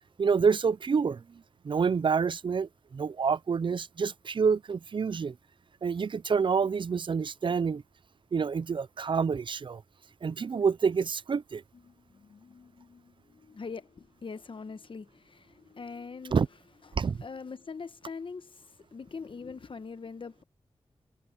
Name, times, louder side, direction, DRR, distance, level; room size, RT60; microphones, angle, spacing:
voice 1, 0.2-1.2 1.6-5.3 5.8-7.8 8.3-9.8 10.2-11.6 16.3-16.5 17.0-17.2, right 5 dB, 55° right, 0.5 m, -27 dB
sound 1, 11.7-19.1 19.6-19.7, left 6 dB, 80° left, 7.7 m, -62 dB
voice 2, 13.5-16.4 17.2-20.4, left 5 dB, 55° left, 1.1 m, -42 dB
cardioid pair, 55°, 10 cm